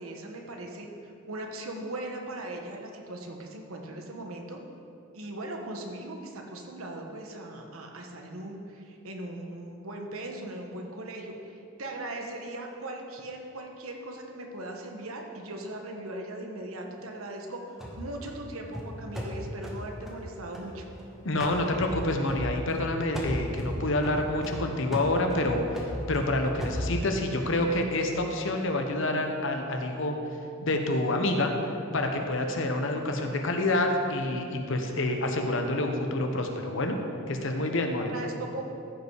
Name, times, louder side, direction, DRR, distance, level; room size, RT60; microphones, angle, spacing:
voice 1, 0.0-4.6 5.1-17.6 18.0-20.8 38.0-38.6, right 1 dB, 85° right, 2 dB, 1.2 m, -39 dB
sound 1, 17.8-21.0 21.4-22.9 23.1-27.3, equal, ahead, 1.2 m, -36 dB
voice 2, 21.2-25.6 26.1-30.1 30.6-31.5 31.9-37.0 37.3-38.1, left 1 dB, 65° left, 4 dB, 1.0 m, -27 dB
14.0 x 5.5 x 4.8 m, 2.7 s
head